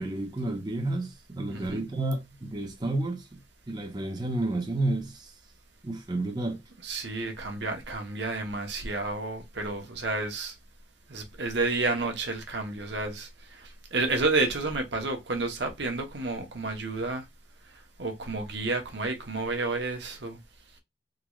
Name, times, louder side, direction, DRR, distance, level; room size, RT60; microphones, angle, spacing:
voice 1, 0.0-3.4 3.7-5.3 5.8-6.6, right 2 dB, 25° right, 0.6 m, -31 dB
voice 2, 1.5-1.8 6.8-10.5 11.1-13.3 13.6-17.2 18.0-20.4, right 3 dB, 70° right, 0.9 m, -30 dB
3.7 x 2.3 x 3.0 m
head